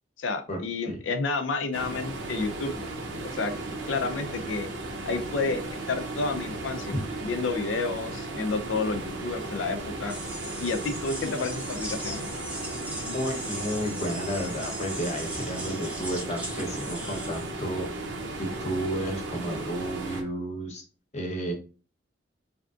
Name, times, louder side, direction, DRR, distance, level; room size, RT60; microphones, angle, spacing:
voice 1, 0.2-2.7 3.2-3.5 3.9-4.7 5.1-5.6 5.9-6.9 7.2-10.1 10.6-12.3, left 4 dB, 85° left, 8 dB, 0.5 m, -30 dB
sound 1, 1.7-20.2, right 2 dB, 70° right, 0.7 m, -36 dB
sound 2, 10.1-17.5, right 1 dB, 5° right, 0.6 m, -38 dB
voice 2, 13.0-17.9 18.4-20.8 21.1-21.5, equal, 40° left, 1 dB, 0.8 m, -32 dB
3.3 x 2.5 x 2.4 m, 0.36 s
head